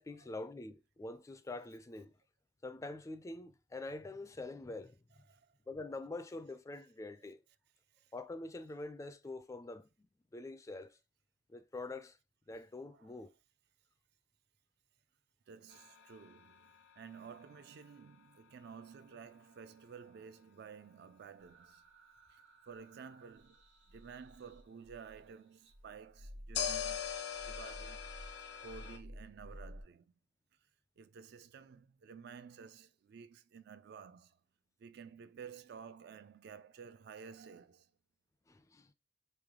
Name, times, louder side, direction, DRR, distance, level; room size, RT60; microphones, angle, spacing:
voice 1, 0.0-2.1 2.6-5.0 5.7-7.4 8.1-9.9 10.3-11.0 11.5-12.2 12.5-13.3 38.5-38.9, left 2 dB, 15° left, 0.3 m, -45 dB
voice 2, 15.5-21.8 22.3-23.6 23.9-27.1 27.4-28.1 28.6-30.1 31.0-34.4 34.8-37.9, right 6 dB, 60° right, 0.3 m, -53 dB
sound 1, 15.7-18.8 26.5-29.0, left 8 dB, 65° left, 0.5 m, -42 dB
sound 2, 21.4-25.3 25.7-29.8, equal, 80° right, 0.9 m, -53 dB
3.3 x 2.9 x 3.6 m
head